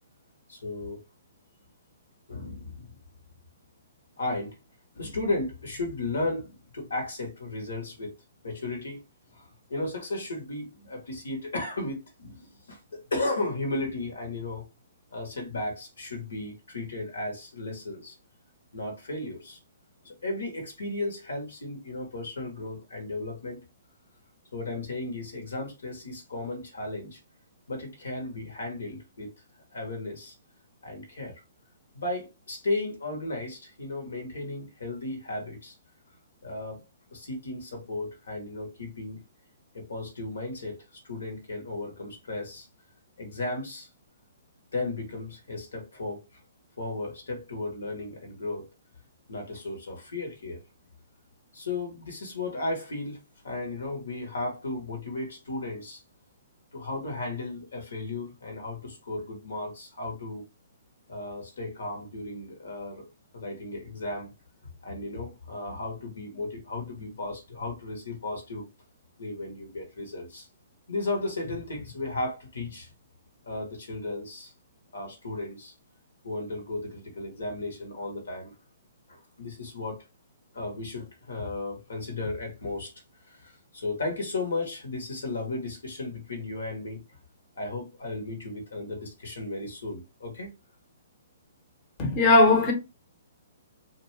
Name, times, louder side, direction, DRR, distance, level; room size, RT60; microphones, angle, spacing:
voice 1, 0.5-1.0 2.3-3.0 4.2-4.6 4.9-8.1 8.4-9.0 9.3-14.7 15.1-18.2 18.7-19.6 20.0-23.6 24.5-27.2 27.7-29.3 29.7-30.3 30.8-31.4 31.9-35.8 36.4-36.8 37.1-39.2 39.7-42.7 43.2-43.9 44.7-46.2 46.8-48.7 49.3-50.6 51.5-56.0 56.7-60.4 61.1-63.1 63.3-64.3 64.8-68.7 69.2-70.5 70.9-72.9 73.4-74.5 74.9-75.7 76.2-78.5 79.1-80.0 80.5-82.9 83.3-87.0 87.6-90.5, left 2 dB, 80° left, 1.0 m, -35 dB
voice 2, 92.0-92.7, left 2 dB, 30° left, 0.8 m, -18 dB
2.4 x 2.2 x 3.1 m
hypercardioid pair, 130°, 0 cm